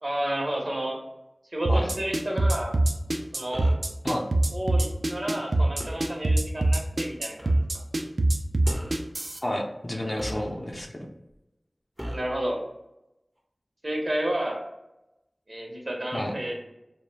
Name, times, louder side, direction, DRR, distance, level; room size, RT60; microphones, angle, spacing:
voice 1, 0.0-1.0 1.5-2.7 3.3-3.7 4.5-7.5 12.0-12.6 13.8-14.6 15.5-16.6, right 1 dB, 55° right, -1 dB, 0.7 m, -31 dB
sound 1, 1.7-9.4, right 1 dB, 75° right, 0.3 m, -23 dB
sound 2, 3.5-3.9 5.8-6.1 7.4-7.6 8.6-9.1 10.2-10.8 12.0-12.4, equal, 15° right, 0.5 m, -37 dB
voice 2, 9.4-11.1 16.1-16.3, left 1 dB, 35° left, 0 dB, 0.4 m, -30 dB
2.3 x 2.0 x 3.2 m, 0.91 s
wide cardioid pair, 50°, 0 cm